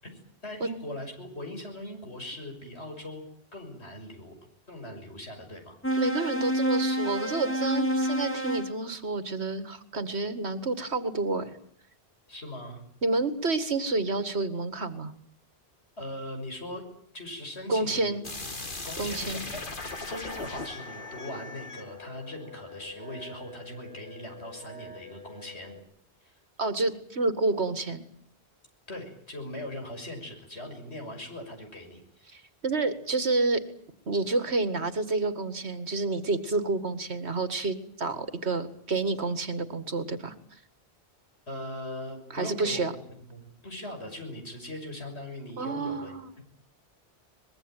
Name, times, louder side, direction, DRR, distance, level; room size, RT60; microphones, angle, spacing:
voice 1, 0.0-3.2 3.5-4.3 4.7-5.8 12.3-12.8 16.0-16.8 17.1-18.2 18.8-25.8 26.2-26.4 28.9-32.4 41.5-43.0 43.3-46.4, left 1 dB, 80° left, 4 dB, 6.7 m, -40 dB
sound 1, 5.8-8.8, equal, 10° left, 2.3 m, -28 dB
voice 2, 6.0-11.6 13.0-15.1 17.7-18.2 19.0-19.4 26.6-28.0 32.3-33.6 34.1-40.3 42.3-42.9 45.6-46.3, right 3 dB, 80° right, 11 dB, 2.3 m, -29 dB
sound 2, 18.2-23.0, left 3 dB, 50° left, 2.3 m, -39 dB
sound 3, 19.8-25.8, left 3 dB, 5° right, 4.0 m, -46 dB
23.5 x 21.5 x 9.2 m, 0.63 s
omnidirectional pair, 1.1 m